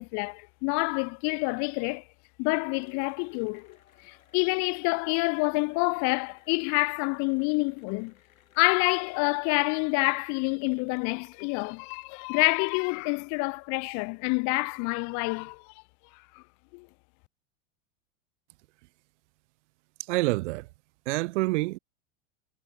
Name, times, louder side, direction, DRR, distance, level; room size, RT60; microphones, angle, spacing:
voice 1, 0.0-2.0 2.4-3.8 4.0-8.1 8.6-15.7 16.3-16.4 16.7-16.9, left 35 dB, 45° left, 0.6 m, -27 dB
Cheering / Applause, 2.7-12.7, left 9 dB, 80° left, 4.7 m, -62 dB
voice 2, 20.1-20.7 21.1-21.8, right 21 dB, 60° right, 0.5 m, -27 dB
hypercardioid pair, 90°, 41 cm